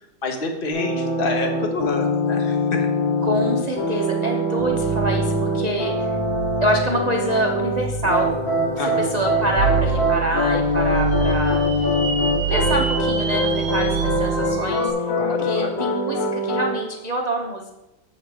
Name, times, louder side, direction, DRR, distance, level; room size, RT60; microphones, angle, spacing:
voice 1, 0.2-2.9 8.8-9.0 15.2-15.7, left 2 dB, 35° left, 4 dB, 1.1 m, -28 dB
sound 1, 0.7-7.8 8.0-16.7, left 1 dB, 80° left, 3.7 m, -23 dB
voice 2, 3.2-6.1 6.6-8.4 8.8-11.6 12.5-14.9 15.4-17.7, right 1 dB, 85° right, 0 dB, 0.3 m, -26 dB
sound 2, 4.6-14.8, right 5 dB, 70° right, 1.4 m, -28 dB
sound 3, 9.3-14.9, right 2 dB, 45° right, 1.2 m, -32 dB
7.6 x 7.5 x 4.7 m, 0.96 s
omnidirectional pair, 2.0 m